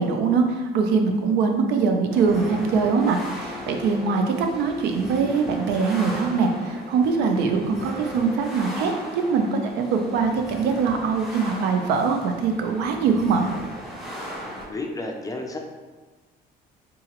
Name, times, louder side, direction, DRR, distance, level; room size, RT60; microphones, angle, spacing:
voice 1, 0.0-13.5, right 5 dB, 85° right, 4 dB, 0.5 m, -22 dB
sound 1, 2.1-14.6, equal, ahead, 0.8 m, -37 dB
voice 2, 14.7-15.6, left 2 dB, 20° left, 2 dB, 0.5 m, -31 dB
3.7 x 2.9 x 2.9 m, 1.3 s
cardioid pair, 110°, 17 cm